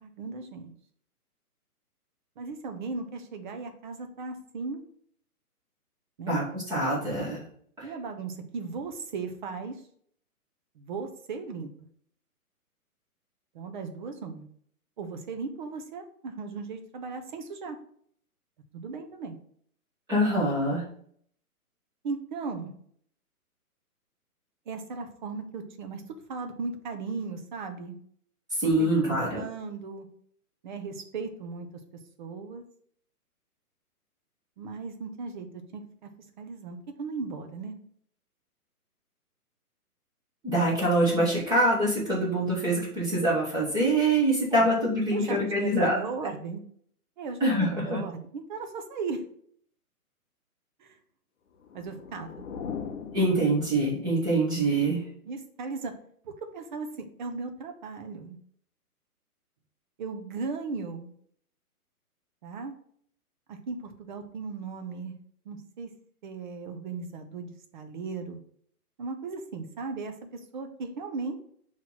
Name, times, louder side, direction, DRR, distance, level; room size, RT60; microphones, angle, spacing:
voice 1, 0.0-0.7 2.4-4.8 6.2-6.4 7.8-9.8 10.8-11.7 13.5-14.5 15.0-17.8 18.7-19.4 22.0-22.7 24.7-26.0 26.3-28.0 28.8-30.1 30.6-31.7 32.2-32.6 34.6-36.1 36.4-37.8 44.5-44.7 45.1-46.6 47.2-49.2 50.8-51.0 51.7-52.4 55.3-55.9 56.2-58.4 60.0-61.1 62.4-62.7 63.5-65.1 65.4-65.9 66.2-68.4 69.0-70.1 70.5-71.4, right 4 dB, 30° right, 5 dB, 0.8 m, -37 dB
voice 2, 6.3-7.4 7.8-7.9 20.1-20.8 28.6-29.4 40.4-46.0 47.4-48.0 53.1-55.0, right 1 dB, 10° right, -6 dB, 1.3 m, -25 dB
sound 1, 51.5-54.2, left 6 dB, 50° left, 0.7 m, -40 dB
5.6 x 3.2 x 5.7 m, 0.62 s
hypercardioid pair, 150°, 45 cm